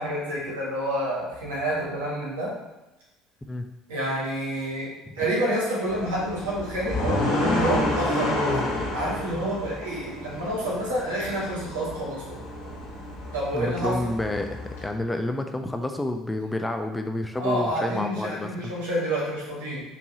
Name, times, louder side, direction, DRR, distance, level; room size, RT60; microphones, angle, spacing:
voice 1, 0.0-2.5 3.9-4.9 5.2-8.3 8.9-12.4 13.3-14.1 17.4-19.8, right 1 dB, 75° right, -5 dB, 1.4 m, -28 dB
sound 1, 5.9-14.8, left 1 dB, 80° left, 1.1 m, -29 dB
voice 2, 13.5-18.7, left 1 dB, 10° left, 5 dB, 0.4 m, -29 dB
4.5 x 2.7 x 2.8 m, 1.0 s
hypercardioid pair, 65°, 0 cm